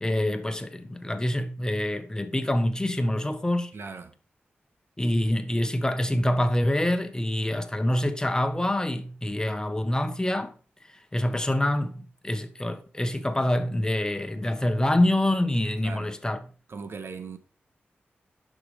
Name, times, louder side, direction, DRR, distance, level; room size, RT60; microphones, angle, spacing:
voice 1, 0.0-3.7 5.0-10.5 11.1-16.4, left 1 dB, 15° left, 1.3 m, -26 dB
voice 2, 3.7-4.1 15.8-16.1 16.7-17.4, right 5 dB, 70° right, 1.4 m, -38 dB
10.5 x 6.4 x 5.1 m
cardioid pair, 60°, 4 cm